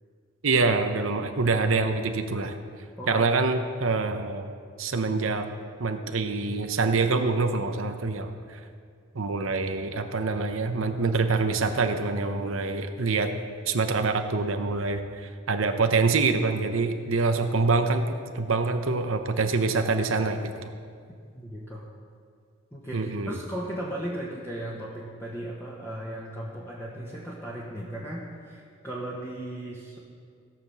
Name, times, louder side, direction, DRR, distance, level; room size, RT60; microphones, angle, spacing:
voice 1, 0.4-2.6 3.1-4.5 4.8-5.5 5.8-8.6 9.1-13.3 13.7-15.0 15.5-20.7 22.9-23.4, right 3 dB, 85° right, 6 dB, 0.9 m, -25 dB
voice 2, 21.3-21.8 22.7-30.0, right 1 dB, 15° left, -6 dB, 1.4 m, -36 dB
16.5 x 5.9 x 7.1 m, 2.1 s
head